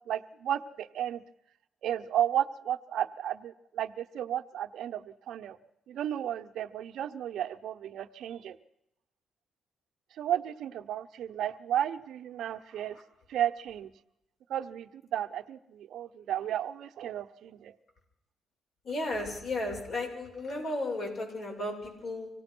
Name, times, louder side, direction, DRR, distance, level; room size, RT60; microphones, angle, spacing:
voice 1, 0.1-1.2 1.8-5.6 5.9-8.6 10.2-13.0 13.3-13.9 14.5-17.7, right 11 dB, 80° right, 8 dB, 0.9 m, -33 dB
voice 2, 18.8-22.3, left 2 dB, 60° left, 1 dB, 7.5 m, -34 dB
25.5 x 17.5 x 6.2 m, 0.84 s
cardioid pair, 90°, 0 cm